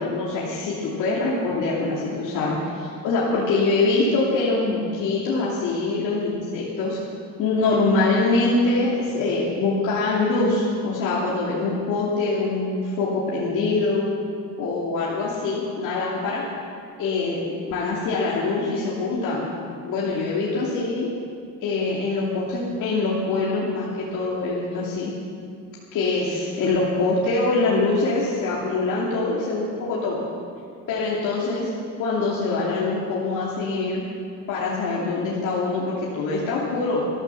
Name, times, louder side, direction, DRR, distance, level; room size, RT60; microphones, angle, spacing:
voice 1, 0.0-7.0 7.4-14.1 14.6-16.4 17.0-19.5 19.8-21.1 21.6-25.1 25.9-30.2 30.9-31.7 32.0-34.0 34.5-37.0, left 3 dB, 60° left, -6 dB, 2.8 m, -24 dB
13.5 x 12.5 x 7.0 m, 2.3 s
cardioid pair, 160°, 34 cm